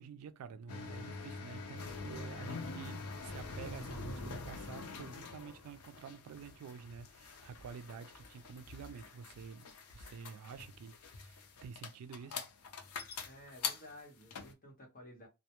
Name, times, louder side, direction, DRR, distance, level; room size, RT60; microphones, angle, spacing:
voice 1, 0.0-12.5, right 6 dB, 85° right, 0.3 m, -49 dB
sound 1, 0.7-14.5, left 4 dB, 80° left, 0.5 m, -45 dB
voice 2, 13.2-15.3, left 1 dB, 40° left, 0.9 m, -54 dB
2.2 x 2.1 x 2.8 m
head